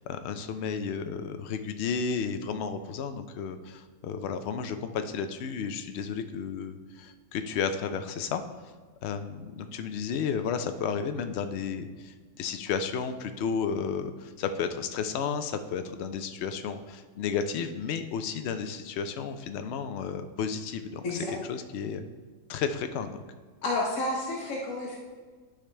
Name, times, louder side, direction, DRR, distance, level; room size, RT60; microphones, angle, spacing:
voice 1, 0.0-8.4 9.0-21.2 21.5-22.0 22.5-23.2, left 6 dB, 65° left, 8 dB, 0.8 m, -32 dB
voice 2, 23.6-25.0, left 2 dB, 90° left, -3 dB, 1.5 m, -30 dB
11.5 x 5.1 x 3.3 m, 1.4 s
omnidirectional pair, 1.4 m